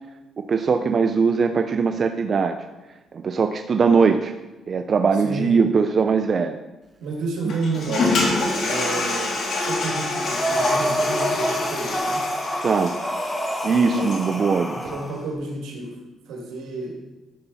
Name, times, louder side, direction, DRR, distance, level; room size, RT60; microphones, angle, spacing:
voice 1, 0.4-2.6 3.1-4.3 4.7-6.6 7.4-7.5 12.6-13.0 13.6-14.8, right 5 dB, 45° right, 7 dB, 0.5 m, -20 dB
voice 2, 5.2-5.6 7.0-12.3 13.7-14.2 14.5-16.0 16.3-16.9, right 3 dB, 85° right, 0 dB, 2.4 m, -31 dB
Guitar, 7.3-7.4 7.9-12.0, right 2 dB, 30° right, 1.1 m, -40 dB
Toilet flush, 7.5-14.4, left 3 dB, 65° left, 3.2 m, -26 dB
Breathing, 10.2-15.2, equal, 15° left, 1.3 m, -27 dB
12.5 x 6.9 x 4.1 m, 1.1 s
cardioid pair, 90°, 0 cm